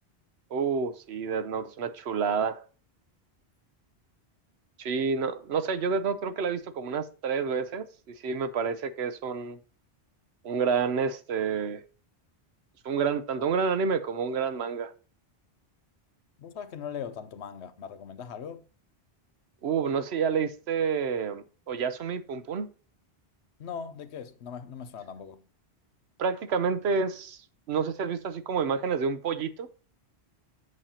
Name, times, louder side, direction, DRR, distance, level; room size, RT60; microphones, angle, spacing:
voice 1, 0.5-2.6 4.8-9.6 10.4-11.8 12.8-14.9 19.6-22.7 26.2-27.4 27.7-29.7, right 6 dB, 75° right, 1.0 m, -29 dB
voice 2, 16.4-18.7 23.6-25.4, left 7 dB, 85° left, 1.0 m, -40 dB
8.0 x 7.2 x 2.8 m
omnidirectional pair, 1.1 m